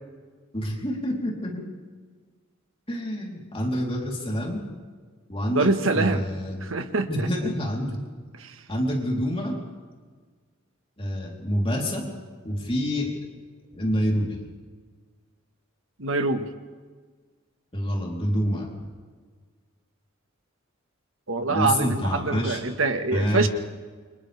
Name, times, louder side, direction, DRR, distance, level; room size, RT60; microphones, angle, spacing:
voice 1, 0.5-1.7 2.9-4.6 5.3-5.7 5.9-6.7 7.1-8.0 8.7-9.6 11.0-12.1 12.4-13.1 13.7-14.4 17.7-18.7 21.5-22.6 23.1-23.5, equal, 30° left, -1 dB, 3.5 m, -27 dB
voice 2, 5.5-6.3 6.6-7.5 8.4-8.6 16.0-16.5 21.3-23.5, right 3 dB, 75° right, 7 dB, 1.6 m, -25 dB
28.5 x 26.0 x 3.5 m, 1.5 s
head